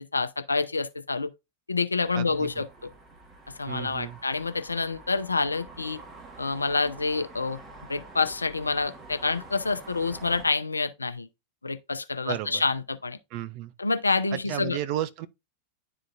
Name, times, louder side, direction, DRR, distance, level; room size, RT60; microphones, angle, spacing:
voice 1, 0.1-1.3 1.7-2.9 3.6-6.0 6.4-7.6 7.9-11.3 11.6-13.2 13.8-14.8, left 4 dB, 80° left, 0.6 m, -27 dB
sound 1, 2.0-10.5, right 3 dB, 25° right, 1.6 m, -47 dB
voice 2, 2.1-2.6 3.7-4.2 12.3-12.6 13.3-13.7 14.3-15.3, right 12 dB, 45° right, 0.6 m, -33 dB
10.5 x 3.8 x 2.5 m
figure-of-eight pair, 90°, 0 cm